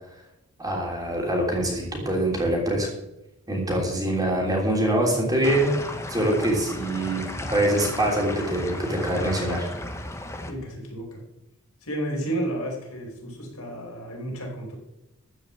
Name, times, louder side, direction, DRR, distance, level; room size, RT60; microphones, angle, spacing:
voice 1, 0.6-2.9 3.5-5.7 6.1-9.7, right 1 dB, 15° right, -1 dB, 3.4 m, -24 dB
sound 1, 5.4-10.5, left 1 dB, 15° left, 1.1 m, -35 dB
voice 2, 10.5-11.2 11.8-14.7, right 1 dB, 75° left, -1 dB, 5.0 m, -32 dB
14.0 x 6.1 x 8.5 m, 0.91 s
head